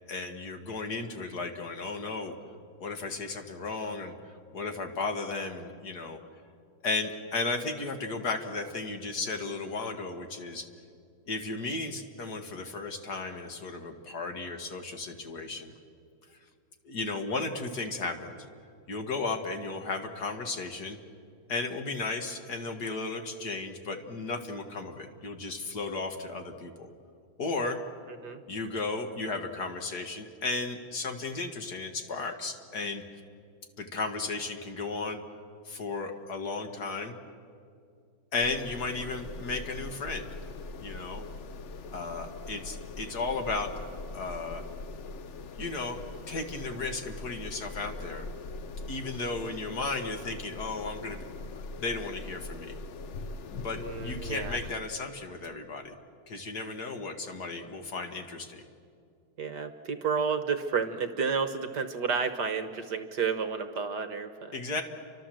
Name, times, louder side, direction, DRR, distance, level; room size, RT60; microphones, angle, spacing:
voice 1, 0.1-2.4 2.8-4.2 4.5-6.2 6.8-10.7 11.3-15.7 16.9-18.4 18.9-21.0 21.5-26.9 27.4-27.8 28.5-33.0 33.8-35.2 35.7-37.1 38.3-40.3 40.8-41.3 41.9-43.7 44.1-44.7 45.6-48.3 48.9-51.3 51.7-52.8 53.5-55.9 56.3-58.6 64.5-64.8, left 3 dB, 50° left, 6 dB, 2.0 m, -34 dB
sound 1, 38.4-54.7, left 3 dB, 85° left, 0.6 m, -41 dB
voice 2, 53.7-54.7 59.4-64.5, right 6 dB, 55° right, 9 dB, 1.6 m, -31 dB
30.0 x 25.0 x 7.7 m, 2.4 s
omnidirectional pair, 2.3 m